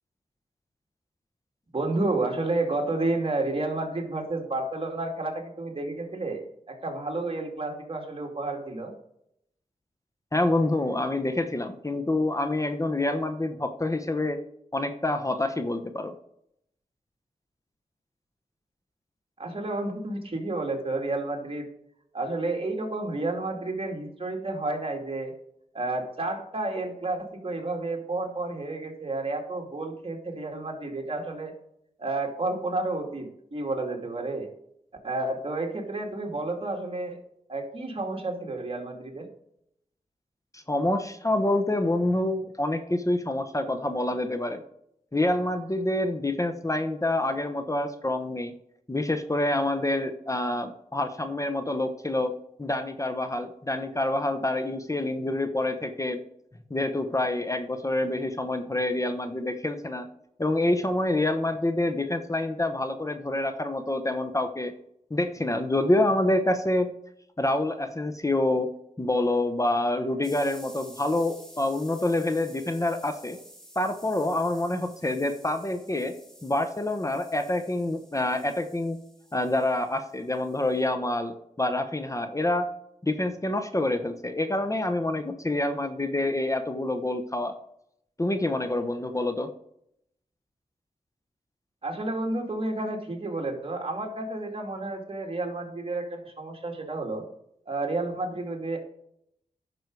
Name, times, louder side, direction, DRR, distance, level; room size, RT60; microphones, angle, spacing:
voice 1, 1.7-6.4 6.7-8.9 19.4-21.7 22.1-25.3 25.7-31.5 32.0-34.5 35.0-37.2 37.5-39.3 91.8-97.2 97.7-98.8, right 2 dB, 40° right, 2 dB, 2.4 m, -31 dB
voice 2, 10.3-14.4 14.7-16.1 40.5-44.6 45.1-48.5 48.9-52.3 52.6-56.2 56.7-60.1 60.4-64.7 65.1-66.9 67.4-68.7 69.0-73.4 73.8-76.1 76.4-79.0 79.3-82.7 83.0-87.6 88.2-89.5, left 1 dB, 20° left, 7 dB, 1.0 m, -27 dB
sound 1, 70.2-80.9, equal, 5° left, 3.1 m, -51 dB
10.5 x 6.2 x 4.7 m, 0.75 s
cardioid pair, 60°, 14 cm